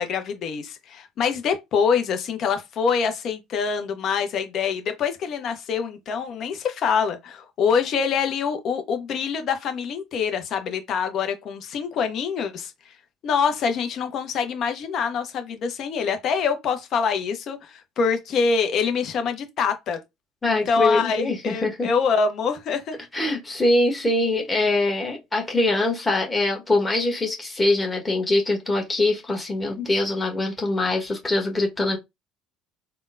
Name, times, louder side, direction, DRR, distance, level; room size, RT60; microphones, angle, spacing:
voice 1, 0.0-12.7 13.2-20.0 20.4-23.0, left 6 dB, 50° left, 0.7 m, -25 dB
voice 2, 20.4-21.9 23.1-32.0, left 2 dB, 20° left, 1.3 m, -23 dB
3.6 x 2.2 x 2.5 m
figure-of-eight pair, 60°, 0 cm